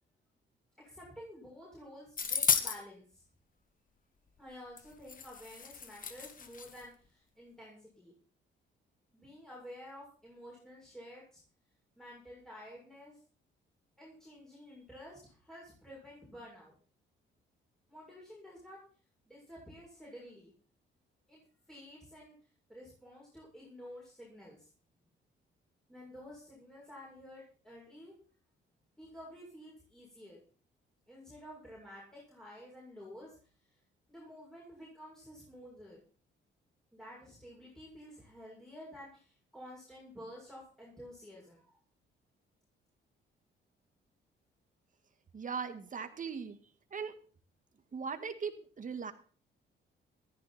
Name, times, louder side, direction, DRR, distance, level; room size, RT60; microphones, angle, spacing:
voice 1, 0.8-3.2 4.4-8.2 9.1-11.4 12.0-13.2 14.0-16.7 17.9-18.8 19.3-20.5 21.3-21.4 21.7-22.3 22.7-24.7 25.9-28.1 29.0-30.4 31.1-33.4 34.1-36.0 36.9-41.8, equal, 5° left, -5 dB, 7.3 m, -51 dB
sound 1, 2.2-2.8 4.8-4.9 5.1-6.8, left 6 dB, 45° left, 1.8 m, -33 dB
voice 2, 45.3-46.6 46.9-47.1 47.9-49.1, right 6 dB, 40° right, 8 dB, 2.1 m, -39 dB
15.0 x 14.0 x 4.4 m, 0.40 s
cardioid pair, 90°, 20 cm